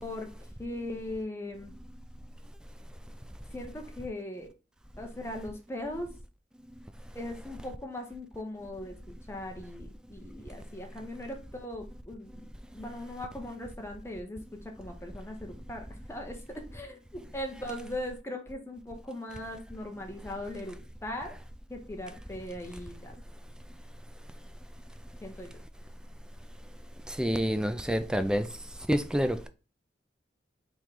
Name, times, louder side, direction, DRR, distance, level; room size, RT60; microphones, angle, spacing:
voice 1, 0.0-1.7 3.5-4.5 5.0-6.1 7.1-8.9 9.3-20.8 21.0-21.3 21.7-23.2 25.2-25.5, left 1 dB, 15° left, 0.8 m, -39 dB
voice 2, 27.1-28.5 28.9-29.5, equal, 5° right, 0.3 m, -27 dB
3.6 x 3.1 x 4.6 m
head